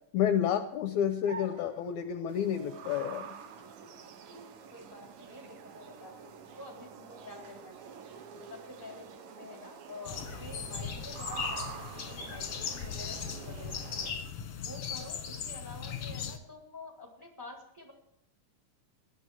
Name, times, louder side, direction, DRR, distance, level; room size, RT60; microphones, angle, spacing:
voice 1, 0.1-3.3, left 9 dB, 75° left, 8 dB, 2.0 m, -30 dB
sound 1, 1.2-9.2, right 3 dB, 40° right, 1.5 m, -53 dB
sound 2, 2.3-14.1, right 7 dB, 90° right, 2.8 m, -47 dB
voice 2, 4.7-8.1 8.5-14.1 14.6-17.9, left 2 dB, 5° right, 0 dB, 3.0 m, -49 dB
sound 3, 10.0-16.4, left 7 dB, 55° left, 2.2 m, -38 dB
18.0 x 12.0 x 4.8 m, 0.77 s
omnidirectional pair, 3.8 m